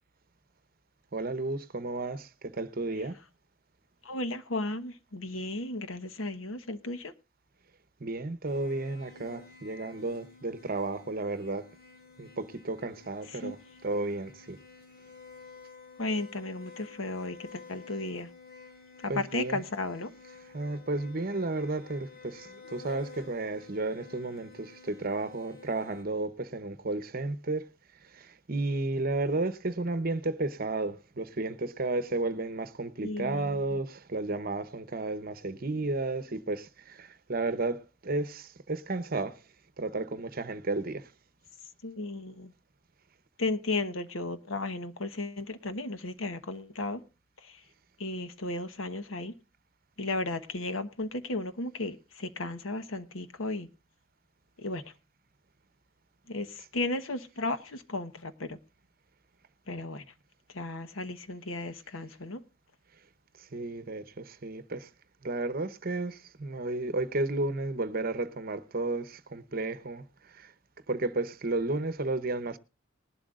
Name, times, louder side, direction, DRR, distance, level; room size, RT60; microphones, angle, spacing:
voice 1, 1.1-3.2 8.0-11.7 12.2-14.6 19.1-19.6 20.3-27.7 28.0-39.4 39.8-41.1 63.4-64.9 65.2-70.5 70.9-72.6, right 2 dB, 45° right, 0.9 m, -33 dB
voice 2, 4.0-7.1 13.4-13.6 16.0-18.3 19.0-20.1 33.0-33.6 41.8-42.5 43.4-47.0 47.4-47.6 48.0-49.3 50.0-53.7 54.6-54.8 56.3-58.6 59.7-60.0 60.5-62.4, left 2 dB, 85° left, 1.1 m, -34 dB
sound 1, 8.4-26.0, left 5 dB, 50° left, 2.9 m, -51 dB
20.0 x 11.5 x 2.5 m
head